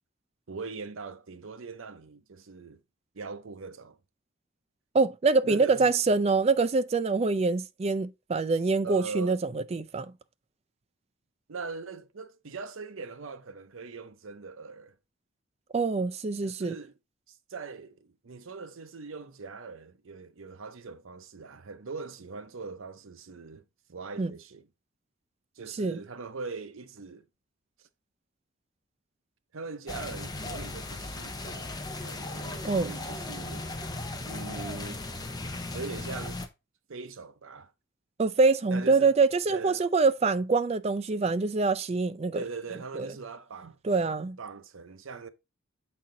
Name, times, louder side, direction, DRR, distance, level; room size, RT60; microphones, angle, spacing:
voice 1, 0.5-2.8 3.1-4.0 5.4-5.9 8.8-9.4 11.5-15.0 16.4-16.9 17.3-24.7 25.6-27.2 27.8-27.9 29.5-33.7 34.3-35.0 35.7-36.4 36.9-37.7 38.7-39.1 39.5-39.9 42.3-43.8 44.4-45.3, right 4 dB, 70° right, 0.7 m, -41 dB
voice 2, 4.9-10.1 15.7-16.7 24.2-24.3 25.8-26.0 32.6-32.9 38.2-42.4 42.9-43.1 43.8-44.4, right 4 dB, 30° right, 0.4 m, -25 dB
sound 1, 29.9-36.5, left 2 dB, 20° left, 0.7 m, -37 dB
7.4 x 4.3 x 3.8 m
head